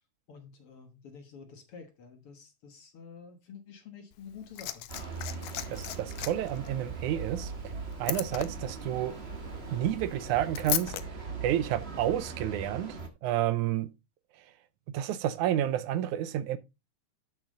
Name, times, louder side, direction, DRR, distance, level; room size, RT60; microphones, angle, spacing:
voice 1, 0.3-4.9, left 6 dB, 55° left, 1.9 m, -49 dB
Liquid, 4.1-11.0 12.1-12.2, left 14 dB, 75° left, 2.0 m, -38 dB
sound 1, 4.9-13.1, right 4 dB, 35° right, 1.0 m, -40 dB
voice 2, 5.7-7.5 8.0-9.2 9.7-10.9 11.4-13.9 14.9-16.6, right 11 dB, 80° right, 2.0 m, -30 dB
12.0 x 6.2 x 3.8 m
omnidirectional pair, 3.7 m